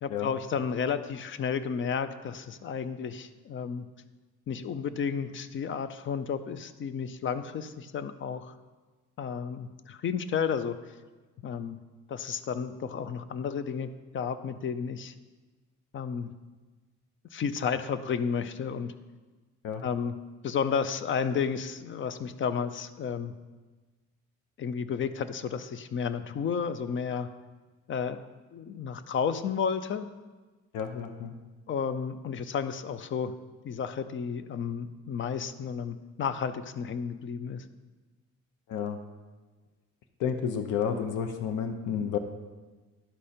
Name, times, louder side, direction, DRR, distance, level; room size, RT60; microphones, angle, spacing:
voice 1, 0.0-3.9 4.5-8.5 9.2-10.8 11.4-11.8 12.1-15.1 15.9-16.3 17.3-18.9 19.8-23.3 24.6-27.3 27.9-28.2 28.5-30.1 31.7-33.3 33.6-37.6, left 6 dB, 40° left, 12 dB, 0.4 m, -32 dB
voice 2, 30.7-31.3 38.7-39.0 40.2-42.2, left 7 dB, 80° left, 6 dB, 0.7 m, -31 dB
11.5 x 5.0 x 4.3 m, 1.3 s
cardioid pair, 135°, 31 cm